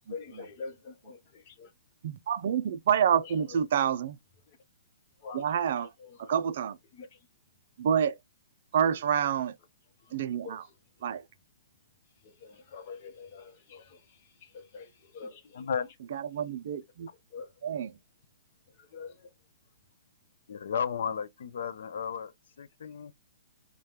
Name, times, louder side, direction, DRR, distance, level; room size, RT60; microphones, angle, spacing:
voice 1, 0.1-1.7 5.2-5.5 6.0-6.3 6.9-7.1 10.4-10.6 12.4-14.0 14.4-15.6 17.3-17.5 18.8-19.3, left 5 dB, 35° left, 0.7 m, -45 dB
voice 2, 2.0-4.2 5.3-5.9 6.2-6.8 7.8-8.2 8.7-9.5 10.1-10.6 11.0-11.2 16.1-17.1 17.6-17.9, right 8 dB, 50° right, 0.4 m, -28 dB
voice 3, 20.5-22.3 22.6-23.1, left 7 dB, 65° left, 0.4 m, -33 dB
4.9 x 2.2 x 2.8 m
hypercardioid pair, 170°, 0 cm